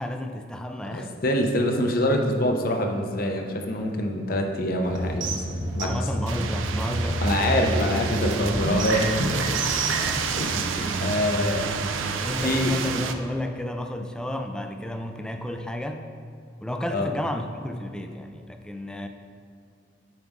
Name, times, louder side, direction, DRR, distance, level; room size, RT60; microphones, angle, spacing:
voice 1, 0.0-1.1 5.8-7.9 8.5-8.7 10.0-10.3 10.8-11.6 12.0-16.1 16.6-19.1, left 1 dB, 5° left, 6 dB, 0.3 m, -32 dB
voice 2, 0.8-5.9 7.2-9.5 10.3-11.7 12.4-12.8 16.9-17.1, left 1 dB, 50° left, 3 dB, 0.7 m, -25 dB
sound 1, 4.8-10.2, right 1 dB, 75° right, 0.9 m, -29 dB
sound 2, 6.3-13.1, right 5 dB, 90° right, 0.5 m, -29 dB
9.2 x 4.7 x 3.6 m, 2.3 s
head